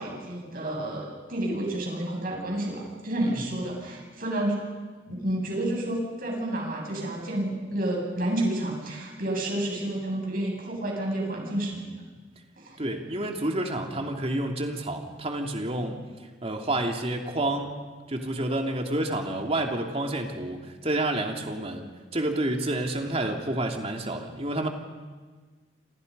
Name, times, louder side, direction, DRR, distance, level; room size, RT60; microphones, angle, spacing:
voice 1, 0.0-4.6 5.1-11.9 12.6-12.8, right 1 dB, 55° right, -1 dB, 7.8 m, -30 dB
voice 2, 12.8-16.0 16.4-17.8 18.1-21.9 22.1-24.7, right 1 dB, 35° right, 3 dB, 2.7 m, -29 dB
27.5 x 27.0 x 5.5 m, 1.4 s
head